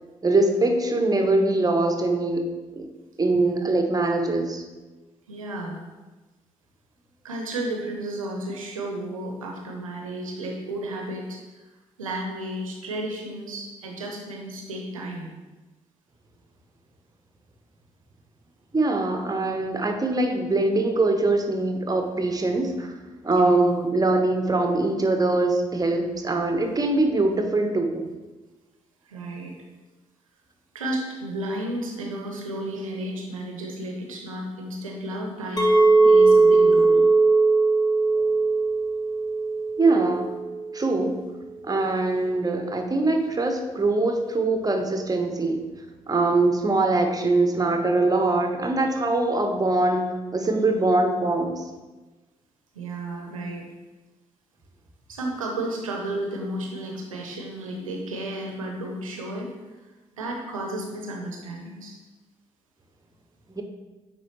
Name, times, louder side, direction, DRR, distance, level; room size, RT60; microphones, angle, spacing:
voice 1, 0.2-2.9 3.2-4.6 18.7-22.9 23.2-28.0 38.1-38.2 39.8-40.3 40.7-41.2 41.6-45.6 46.1-50.1 50.3-51.6 63.5-63.6, right 2 dB, 20° right, 4 dB, 1.1 m, -23 dB
voice 2, 5.3-5.8 7.2-11.4 12.0-15.3 23.3-23.6 29.1-29.5 30.7-37.0 52.7-53.7 55.1-59.5 60.1-62.0, right 1 dB, 85° right, 1 dB, 0.8 m, -32 dB
Chink clink, 35.6-40.7, right 3 dB, 25° left, 1.2 m, -19 dB
9.3 x 3.7 x 3.2 m, 1.2 s
figure-of-eight pair, 40°, 17 cm